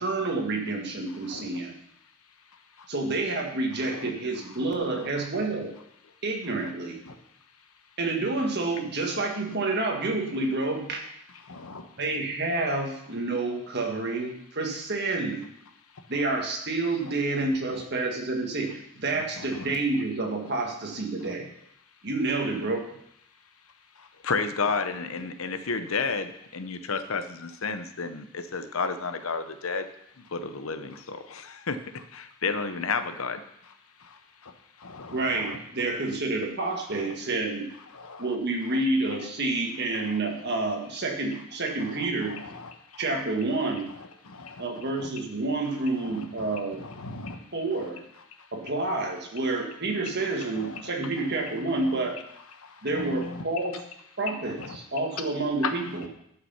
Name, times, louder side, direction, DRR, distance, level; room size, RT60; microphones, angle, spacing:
voice 1, 0.0-1.7 2.9-5.7 6.2-7.0 8.0-11.0 12.0-15.5 16.1-21.5 22.0-22.9 35.1-37.7 38.2-42.6 43.0-43.9 44.6-46.8 47.5-48.0 48.5-52.2 52.8-53.8 54.2-56.1, right 2 dB, 50° right, 2 dB, 1.7 m, -29 dB
voice 2, 11.5-11.8 34.8-35.1 35.4-35.5 38.0-38.2 44.3-44.5 47.0-47.4 53.1-53.2, left 2 dB, 85° left, 6 dB, 1.1 m, -40 dB
voice 3, 24.2-29.9 30.3-31.8 32.1-33.4, left 4 dB, 70° left, 9 dB, 0.8 m, -30 dB
11.0 x 5.8 x 5.7 m, 0.74 s
head